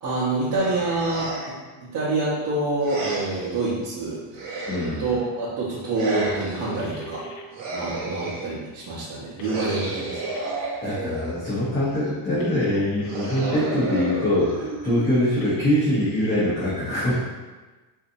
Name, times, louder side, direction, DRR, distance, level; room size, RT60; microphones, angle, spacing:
voice 1, 0.0-4.2 5.0-7.2 7.7-10.2, right 2 dB, 55° right, -9 dB, 0.9 m, -27 dB
sound 1, 0.6-1.7 2.8-3.6 4.3-5.3 5.9-6.8 7.5-8.6 9.4-11.5 13.0-15.4, right 3 dB, 75° right, 1.1 m, -32 dB
voice 2, 4.7-5.1 10.8-17.2, left 1 dB, 25° left, -10 dB, 0.8 m, -23 dB
sound 2, 6.8-7.4 9.4-10.4 12.4-13.4 15.4-16.4, equal, 65° left, 0.5 m, -40 dB
3.9 x 2.7 x 2.6 m, 1.2 s
cardioid pair, 145°, 45 cm